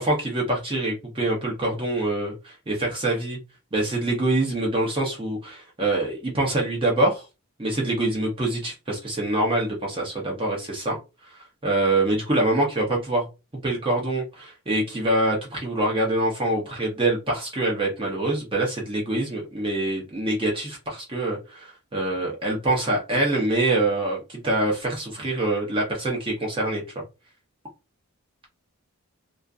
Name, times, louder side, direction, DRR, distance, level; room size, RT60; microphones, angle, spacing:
voice 1, 0.0-3.4 3.7-7.2 7.6-11.0 11.2-13.3 13.6-26.8, right 2 dB, 25° right, 0.6 m, -25 dB
2.5 x 2.4 x 2.3 m
head